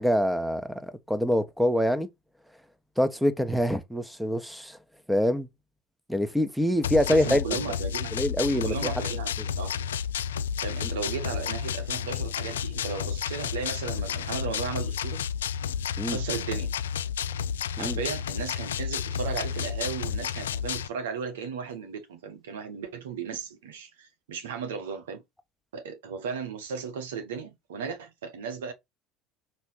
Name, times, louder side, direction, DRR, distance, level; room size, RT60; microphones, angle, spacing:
voice 1, 0.0-2.1 3.0-4.8 5.1-5.5 6.1-7.4 8.1-8.9 10.8-10.9 16.0-16.2 17.8-18.0, equal, ahead, 1.2 m, -25 dB
sound 1, 6.8-20.9, left 8 dB, 85° left, 0.4 m, -31 dB
voice 2, 7.1-8.1 8.5-9.9 10.6-15.3 16.1-16.7 17.8-25.2 25.7-28.7, right 6 dB, 80° right, 1.5 m, -35 dB
6.0 x 3.3 x 5.6 m
hypercardioid pair, 70°, 0 cm